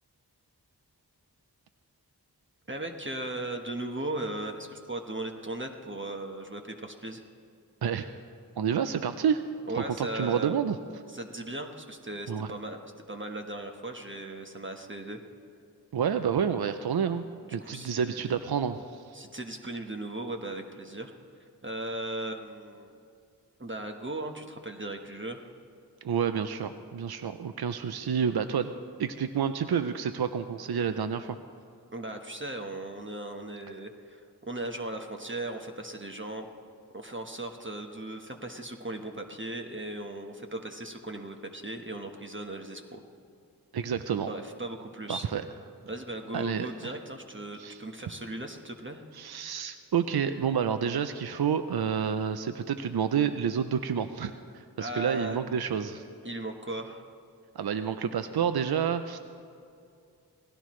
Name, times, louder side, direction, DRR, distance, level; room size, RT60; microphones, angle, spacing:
voice 1, 2.7-7.2 9.7-10.6 11.1-12.8 13.1-15.2 17.5-18.3 19.1-21.1 21.6-22.9 23.6-25.5 31.9-36.5 36.9-43.0 44.2-45.3 45.8-49.0 54.8-55.4 56.2-57.1, right 1 dB, 30° right, 3 dB, 1.2 m, -37 dB
voice 2, 8.6-9.4 9.8-10.8 12.3-12.5 15.9-17.2 17.5-19.2 26.0-28.7 29.0-31.4 43.7-44.3 45.1-45.4 46.3-46.9 47.6-47.8 49.1-56.0 57.5-59.2, right 7 dB, 75° right, 9 dB, 0.6 m, -29 dB
19.5 x 16.0 x 3.2 m, 2.5 s
wide cardioid pair, 40°, 39 cm